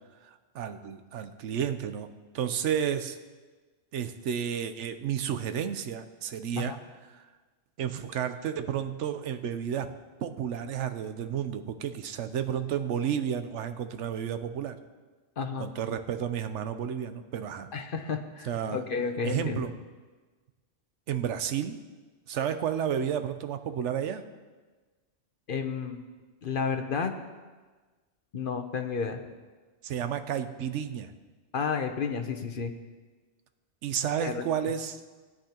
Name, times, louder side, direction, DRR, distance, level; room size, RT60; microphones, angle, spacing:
voice 1, 0.2-3.2 3.9-6.7 7.1-7.2 7.8-9.9 10.2-14.8 15.6-17.7 18.4-18.8 19.2-19.7 21.1-21.8 22.3-24.2 29.8-31.1 33.8-35.0, right 8 dB, 80° right, 10 dB, 1.0 m, -31 dB
voice 2, 15.4-15.7 17.7-19.6 25.5-26.0 26.4-27.1 28.3-29.2 31.5-32.7 34.2-34.4, left 5 dB, 50° left, 6 dB, 0.9 m, -31 dB
18.5 x 9.7 x 2.9 m, 1.3 s
omnidirectional pair, 1.2 m